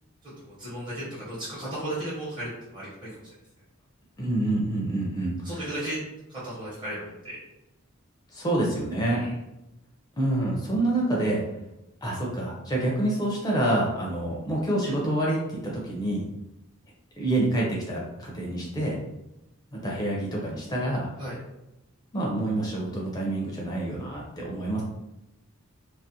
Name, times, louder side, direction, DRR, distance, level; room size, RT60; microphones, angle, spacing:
voice 1, 0.6-3.1 5.4-6.0 6.3-7.4 9.2-9.3 21.2-21.4, right 1 dB, 25° right, -10 dB, 0.8 m, -35 dB
voice 2, 4.2-5.7 8.3-9.2 10.2-11.4 12.0-16.2 17.2-19.0 19.8-21.1 22.1-24.8, right 1 dB, 20° left, -3 dB, 0.4 m, -27 dB
2.4 x 2.0 x 2.6 m, 0.91 s
head